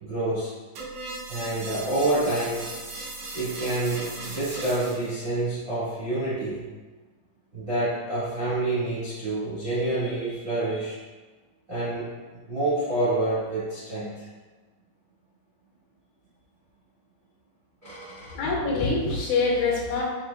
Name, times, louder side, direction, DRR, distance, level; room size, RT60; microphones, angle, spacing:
voice 1, 0.0-0.5 1.3-2.7 3.3-6.6 7.5-11.0 11.7-12.1 12.5-14.3 17.8-18.3, right 2 dB, 45° right, -11 dB, 0.8 m, -28 dB
sound 1, 0.8-5.2, right 3 dB, 75° right, 2.0 m, -37 dB
voice 2, 18.4-20.0, left 3 dB, 75° left, -3 dB, 2.2 m, -24 dB
6.1 x 3.1 x 2.3 m, 1.3 s
omnidirectional pair, 3.7 m